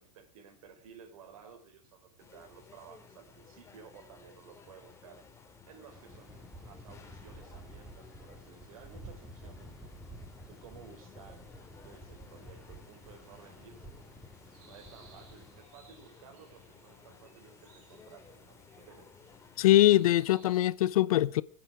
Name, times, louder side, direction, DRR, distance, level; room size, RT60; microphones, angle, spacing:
voice 1, 0.0-5.2 5.7-9.9 10.5-11.5 11.8-14.2 14.6-19.1, right 7 dB, 75° right, 4.5 m, -55 dB
sound 1, 2.2-20.3, left 5 dB, 15° left, 2.7 m, -57 dB
sound 2, 5.9-15.6, equal, ahead, 4.0 m, -51 dB
sound 3, 12.3-20.7, right 5 dB, 45° right, 7.9 m, -63 dB
voice 2, 19.6-21.4, left 14 dB, 75° left, 0.7 m, -23 dB
25.5 x 9.1 x 4.9 m
hypercardioid pair, 125°, 18 cm